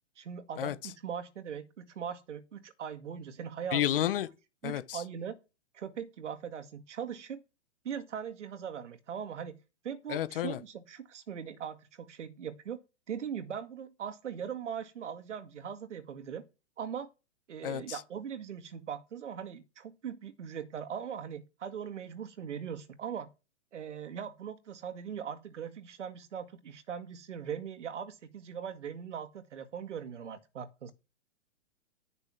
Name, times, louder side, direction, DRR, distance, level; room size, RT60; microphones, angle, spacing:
voice 1, 0.2-3.8 4.6-5.4 5.7-7.4 7.8-9.6 9.8-12.8 13.1-16.4 16.8-17.1 17.5-23.3 23.7-30.9, right 8 dB, 75° right, 2.0 m, -40 dB
voice 2, 3.7-4.3 4.6-5.0 10.1-10.6 17.6-18.0, left 12 dB, 50° left, 1.1 m, -31 dB
11.0 x 6.7 x 6.0 m
hypercardioid pair, 155°, 36 cm